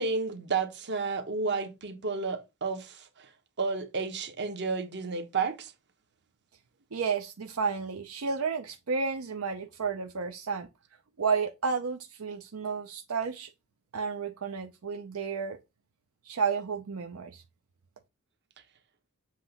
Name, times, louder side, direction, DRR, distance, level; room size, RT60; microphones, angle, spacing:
voice 1, 0.0-3.3 3.6-5.7, right 4 dB, 55° right, 1.1 m, -31 dB
voice 2, 6.9-10.7 11.2-13.5 13.9-15.6 16.3-17.4, right 5 dB, 80° right, 0.6 m, -32 dB
7.6 x 2.9 x 5.4 m
head